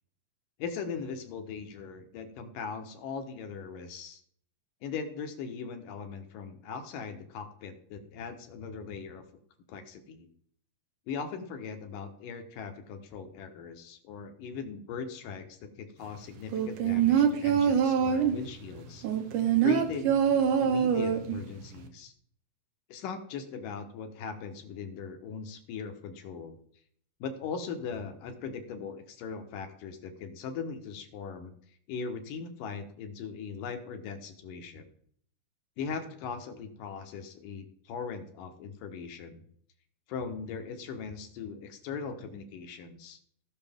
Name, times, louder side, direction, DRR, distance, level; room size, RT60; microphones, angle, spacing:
voice 1, 0.6-4.2 4.8-9.2 9.7-10.3 11.1-19.1 19.6-20.3 20.6-22.1 22.9-26.6 27.2-31.5 31.9-34.9 35.8-39.4 40.1-43.2, left 5 dB, 70° left, 6 dB, 2.6 m, -39 dB
sound 1, 16.5-18.5 19.0-21.4 21.8-21.9, right 8 dB, 70° right, 2.2 m, -24 dB
17.0 x 6.3 x 3.5 m, 0.63 s
omnidirectional pair, 4.2 m